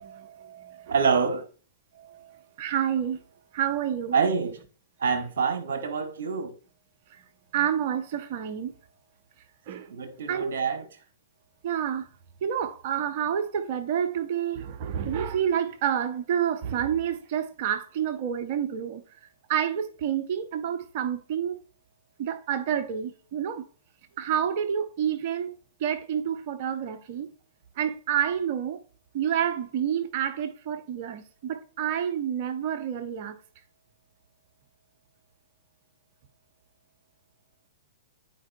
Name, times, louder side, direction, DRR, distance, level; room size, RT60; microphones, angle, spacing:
voice 1, 0.0-0.9 1.9-3.2 3.5-4.2 7.1-7.2 7.5-8.7 9.7-10.0 10.3-10.6 11.6-12.1 12.4-19.0 19.5-21.6 22.2-23.6 24.2-27.3 27.8-28.8 29.1-33.4, right 9 dB, 45° right, 0.8 m, -29 dB
voice 2, 0.9-1.5 4.1-4.6 5.0-6.5 9.9-10.9, right 5 dB, 60° right, 1.3 m, -26 dB
12.0 x 4.7 x 2.3 m
figure-of-eight pair, 110°, 0 cm